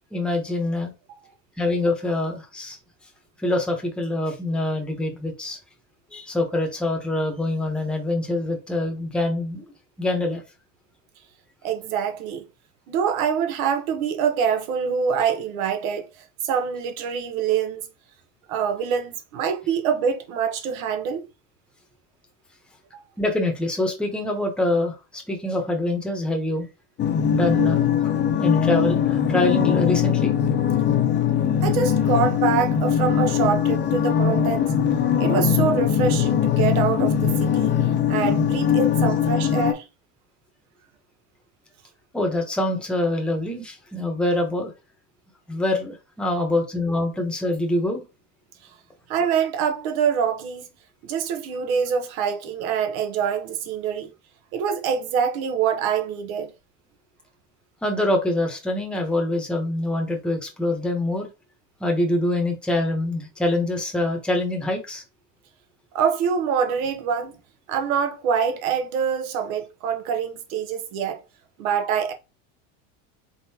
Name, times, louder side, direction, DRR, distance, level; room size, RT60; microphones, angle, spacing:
voice 1, 0.1-0.9 1.6-2.8 3.4-5.6 6.1-9.7 10.0-10.4 23.2-26.7 27.3-28.1 28.4-30.3 42.1-44.7 45.5-48.0 57.8-61.3 61.8-65.0, left 1 dB, ahead, 0.9 m, -25 dB
voice 2, 11.6-12.4 12.9-16.1 16.4-17.8 18.5-21.2 22.9-23.0 31.6-34.7 35.2-37.7 38.1-39.9 49.1-50.7 51.0-54.1 54.5-56.5 65.9-67.4 67.7-71.2 71.6-72.1, right 7 dB, 85° right, 1.1 m, -25 dB
sound 1, 27.0-39.7, left 8 dB, 25° left, 0.6 m, -21 dB
3.9 x 3.8 x 2.8 m
supercardioid pair, 135°, 41 cm